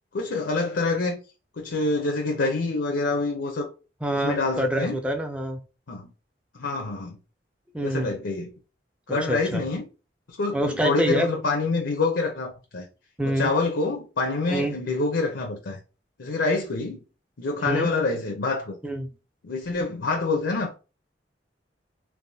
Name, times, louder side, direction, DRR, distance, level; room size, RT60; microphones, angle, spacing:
voice 1, 0.1-1.2 1.6-3.7 4.1-5.0 5.9-6.1 6.5-7.2 7.8-8.5 9.1-9.9 10.4-12.9 13.2-15.8 16.2-17.0 17.4-18.8 19.4-20.7, left 3 dB, 75° left, 0.6 m, -26 dB
voice 2, 4.0-5.6 7.7-8.2 9.1-9.6 10.5-11.3 13.2-13.5 14.5-14.8 17.6-17.9 18.8-19.1, right 1 dB, 5° right, 0.5 m, -26 dB
3.4 x 2.6 x 2.6 m
head